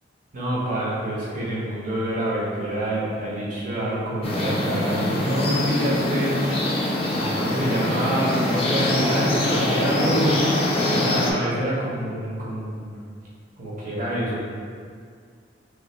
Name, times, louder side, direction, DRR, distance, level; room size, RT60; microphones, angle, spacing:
voice 1, 0.3-6.4 7.1-10.4 10.9-12.9 13.6-14.4, equal, 50° right, -7 dB, 0.7 m, -26 dB
sound 1, 4.2-11.3, left 1 dB, 35° left, 0.5 m, -24 dB
3.1 x 2.2 x 4.2 m, 2.1 s
head